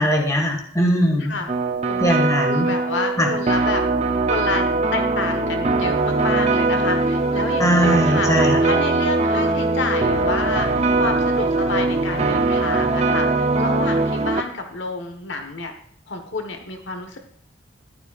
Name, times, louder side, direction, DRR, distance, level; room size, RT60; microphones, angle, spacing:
voice 1, 0.0-1.3 2.0-2.7 3.2-3.3 7.6-8.6, equal, 15° left, 1 dB, 1.8 m, -20 dB
sound 1, 1.5-14.4, right 3 dB, 35° right, 0.7 m, -21 dB
voice 2, 1.9-3.8 4.3-4.6 4.9-8.3 8.6-10.7 11.0-15.7 16.1-17.2, left 3 dB, 65° left, 5 dB, 1.3 m, -29 dB
14.5 x 11.0 x 2.4 m, 0.62 s
head